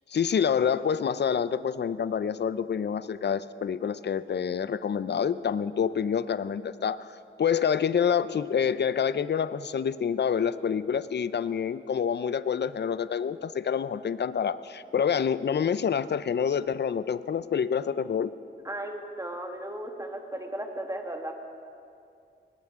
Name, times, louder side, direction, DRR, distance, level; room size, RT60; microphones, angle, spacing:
voice 1, 0.1-7.1 7.4-18.3, left 7 dB, 55° left, 15 dB, 0.5 m, -27 dB
voice 2, 18.6-21.3, right 1 dB, 15° right, 3 dB, 1.7 m, -35 dB
20.5 x 18.0 x 3.7 m, 2.5 s
wide cardioid pair, 85°, 21 cm